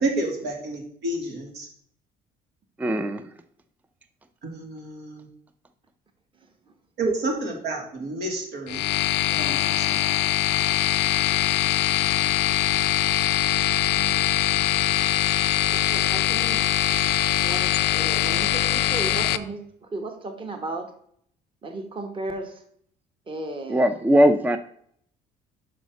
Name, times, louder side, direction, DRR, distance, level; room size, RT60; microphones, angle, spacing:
voice 1, 0.0-1.7 4.4-5.3 7.0-8.8 9.3-10.0 10.4-10.6, right 2 dB, 80° right, 1 dB, 2.6 m, -30 dB
voice 2, 2.8-3.2 23.7-24.6, equal, 10° right, 10 dB, 0.4 m, -19 dB
voice 3, 6.3-6.7 13.9-14.2 15.7-16.7 17.4-20.9 21.6-22.6 23.3-24.0, right 2 dB, 30° right, 6 dB, 1.2 m, -35 dB
sound 1, 8.7-19.4, left 14 dB, 80° left, 0.5 m, -22 dB
5.6 x 5.2 x 6.2 m, 0.64 s
cardioid pair, 110°, 17 cm